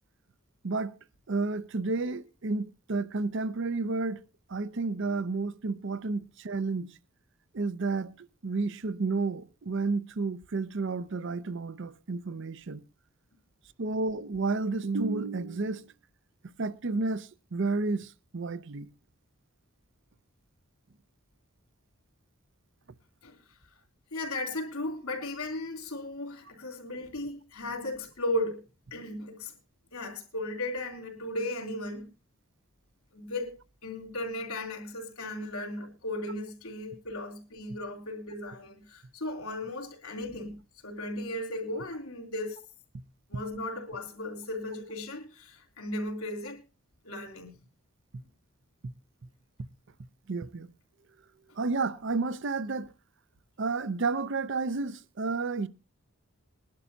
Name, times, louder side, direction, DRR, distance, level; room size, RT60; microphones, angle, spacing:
voice 1, 1.3-4.2 4.5-7.0 7.5-12.8 13.8-15.9 16.6-18.9 50.3-50.7 51.6-52.9 53.6-55.7, right 3 dB, 60° right, 0.6 m, -31 dB
voice 2, 23.2-23.6 24.1-28.6 28.9-29.5 29.9-32.1 33.1-33.5 33.8-42.6 43.3-46.6 47.0-47.6, left 1 dB, 85° left, 3.4 m, -36 dB
21.0 x 11.5 x 2.7 m
head